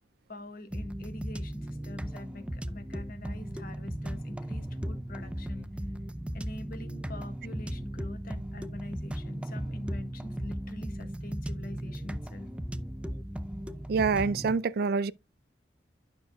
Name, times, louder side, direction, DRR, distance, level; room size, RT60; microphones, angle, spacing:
voice 1, 0.3-5.7 6.3-12.5, left 1 dB, 55° left, 1.5 m, -44 dB
sound 1, 0.7-14.5, equal, 5° right, 0.5 m, -37 dB
voice 2, 13.9-15.1, right 5 dB, 60° right, 0.4 m, -26 dB
11.5 x 6.6 x 2.2 m
head